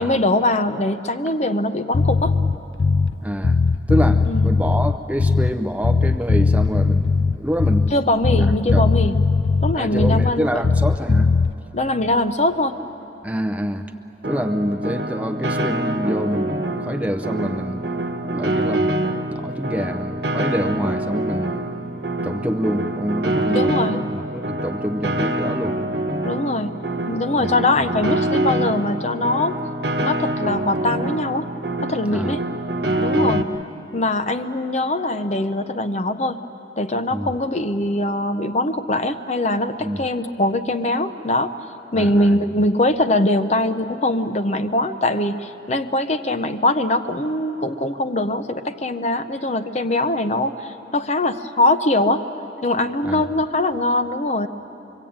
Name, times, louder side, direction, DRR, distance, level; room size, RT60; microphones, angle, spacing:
voice 1, 0.0-2.4 4.3-4.5 7.9-9.2 9.6-10.5 11.7-12.8 23.5-24.0 26.2-26.8 27.1-29.6 30.0-31.5 31.8-32.4 33.0-33.5 33.9-36.4 36.8-41.5 41.9-52.2 52.6-54.5, left 1 dB, 40° left, 8 dB, 0.8 m, -22 dB
Bass guitar, 1.9-3.2 3.4-5.6 5.8-8.0 8.2-10.4 10.6-11.5, left 4 dB, 80° left, 0.5 m, -18 dB
voice 2, 3.2-3.6 3.9-8.0 8.3-8.9 9.7-11.3 13.2-13.9 14.2-17.9 18.1-19.0 19.3-21.5 22.2-25.8 27.4-27.6 32.1-32.4 33.2-33.4 37.1-37.3 39.8-40.1 41.9-42.5 53.0-53.2, equal, 10° right, 7 dB, 0.7 m, -26 dB
Piano, 14.2-33.4, right 1 dB, 65° right, 1.2 m, -25 dB
25.0 x 23.5 x 8.8 m, 3.0 s
head